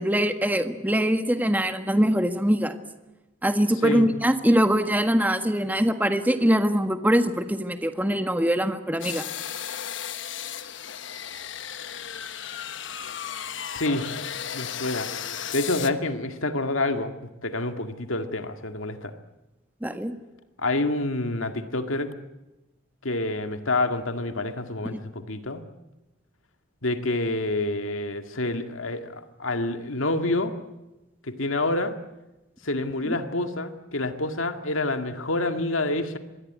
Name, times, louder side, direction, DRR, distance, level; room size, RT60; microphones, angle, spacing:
voice 1, 0.0-2.8 3.4-9.2 19.8-20.2 24.9-25.0 33.1-33.2, equal, 10° right, 8 dB, 1.6 m, -23 dB
sound 1, 9.0-15.9, left 9 dB, 65° left, 1.2 m, -35 dB
voice 2, 13.6-14.1 14.5-15.1 15.5-17.1 17.4-19.1 20.6-22.1 23.0-25.6 26.8-30.5 31.2-31.9 32.6-36.2, left 2 dB, 80° left, 7 dB, 2.1 m, -27 dB
26.0 x 21.5 x 9.5 m, 1.0 s
head